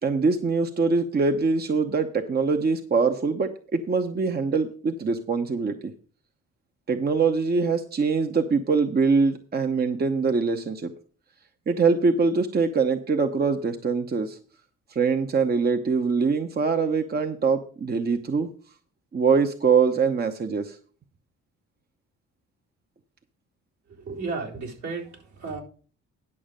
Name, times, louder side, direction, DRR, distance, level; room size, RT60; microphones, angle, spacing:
voice 1, 0.0-5.9 6.9-10.9 11.7-14.4 14.9-18.5 19.1-20.8, right 4 dB, 30° right, 7 dB, 0.9 m, -23 dB
voice 2, 24.0-25.6, right 4 dB, 70° right, -2 dB, 4.1 m, -33 dB
11.0 x 6.4 x 5.1 m, 0.42 s
cardioid pair, 90°, 30 cm